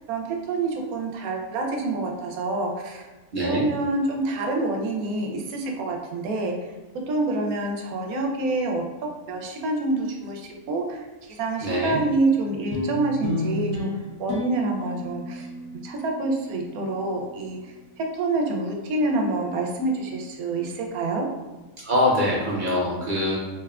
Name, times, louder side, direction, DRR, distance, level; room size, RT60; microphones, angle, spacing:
voice 1, 0.1-3.1 3.4-6.5 7.1-8.8 9.3-13.9 14.2-15.5 15.8-21.3, right 2 dB, 75° right, 1 dB, 1.0 m, -27 dB
voice 2, 3.3-3.6 11.6-12.0 21.8-23.4, left 1 dB, 55° right, -4 dB, 0.5 m, -23 dB
sound 1, 12.7-17.3, left 1 dB, 80° left, 1.3 m, -32 dB
3.5 x 3.3 x 2.3 m, 1.2 s
omnidirectional pair, 1.6 m